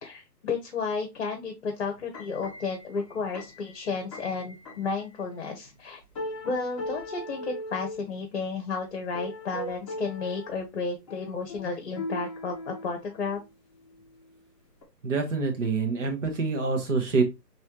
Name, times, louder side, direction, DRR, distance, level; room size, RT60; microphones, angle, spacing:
voice 1, 0.0-6.0 6.4-13.4, left 4 dB, 45° left, 4 dB, 0.9 m, -32 dB
sound 1, 2.0-5.0 5.6-5.8 6.2-8.0 9.0-10.6 11.1-13.5 13.9-14.2 14.8-14.9, left 1 dB, 20° left, 0.7 m, -39 dB
voice 2, 15.0-17.2, right 4 dB, 45° right, 3 dB, 1.4 m, -26 dB
4.5 x 3.2 x 2.9 m, 0.24 s
figure-of-eight pair, 140°, 49 cm